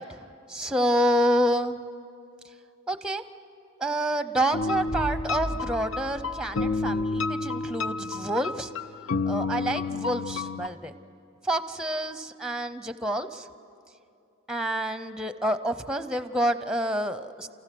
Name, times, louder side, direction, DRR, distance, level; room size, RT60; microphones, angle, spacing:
voice 1, 0.0-1.8 2.9-3.2 3.8-8.7 9.3-10.9 11.4-13.5 14.5-17.5, right 1 dB, 5° right, 11 dB, 0.7 m, -28 dB
sound 1, 4.5-10.7, left 3 dB, 80° left, 0.7 m, -30 dB
sound 2, 4.5-7.3, equal, 40° left, 1.8 m, -37 dB
29.5 x 28.5 x 6.1 m, 2.6 s
head